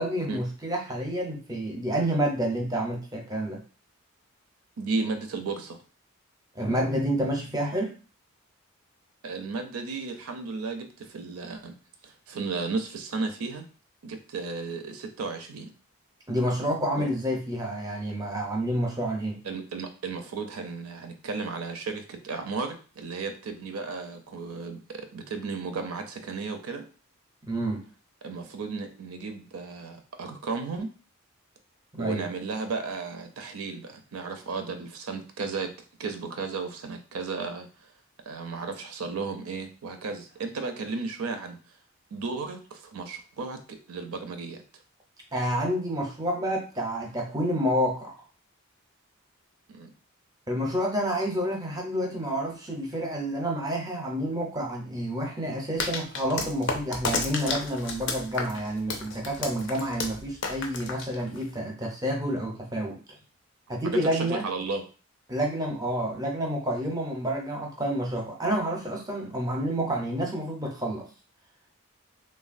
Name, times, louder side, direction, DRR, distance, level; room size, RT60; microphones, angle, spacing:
voice 1, 0.0-3.6 6.6-7.9 16.3-19.4 27.5-27.8 31.9-32.3 45.3-48.1 50.5-63.0 63.7-64.4 65.3-71.1, equal, 15° right, 0 dB, 0.5 m, -29 dB
voice 2, 4.8-5.8 9.2-11.8 12.0-13.6 14.0-15.7 17.0-17.1 19.4-26.8 28.2-30.9 32.0-35.7 36.0-37.9 38.3-41.6 42.1-44.6 49.7-49.9 63.8-64.8 66.1-66.2, right 4 dB, 85° right, 6 dB, 0.5 m, -34 dB
sound 1, 55.8-61.6, left 4 dB, 55° left, 0.5 m, -32 dB
3.1 x 2.2 x 2.5 m, 0.37 s
head